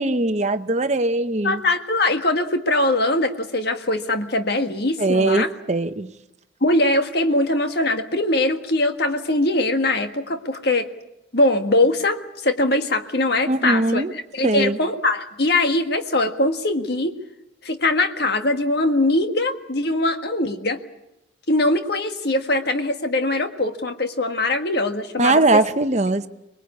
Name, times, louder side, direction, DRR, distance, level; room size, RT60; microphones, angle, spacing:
voice 1, 0.0-1.6 5.0-6.1 13.5-14.1 14.4-14.8 25.2-26.3, right 2 dB, 35° right, 9 dB, 0.9 m, -20 dB
voice 2, 1.4-5.5 6.6-10.9 11.3-14.0 14.3-17.2 17.6-20.8 21.5-25.4, left 2 dB, 55° left, 7 dB, 1.6 m, -21 dB
24.5 x 21.0 x 8.4 m, 0.90 s
head